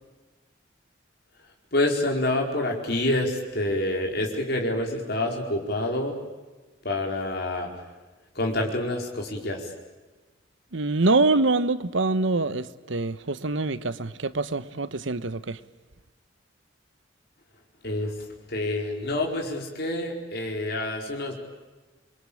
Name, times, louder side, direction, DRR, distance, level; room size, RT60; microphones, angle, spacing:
voice 1, 1.7-6.2 6.8-7.7 8.3-9.7 17.8-21.3, left 1 dB, 55° left, 1 dB, 4.7 m, -27 dB
voice 2, 10.7-15.6, right 3 dB, 75° right, 14 dB, 1.1 m, -25 dB
28.0 x 22.5 x 8.8 m, 1.2 s
head